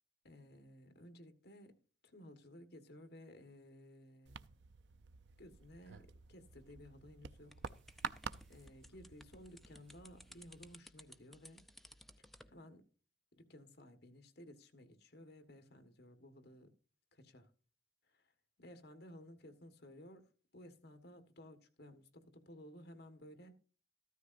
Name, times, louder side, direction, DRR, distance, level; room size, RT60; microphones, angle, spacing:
voice 1, 0.2-1.7 2.0-4.5 5.4-11.6 12.5-12.9 13.3-16.7 17.1-17.5 18.1-18.3 18.6-20.3 20.5-23.6, left 1 dB, 65° left, 1.5 m, -57 dB
sound 1, 4.3-10.8, right 6 dB, 80° right, 0.5 m, -50 dB
sound 2, 7.5-12.5, left 1 dB, ahead, 0.6 m, -59 dB
14.0 x 13.0 x 2.6 m
head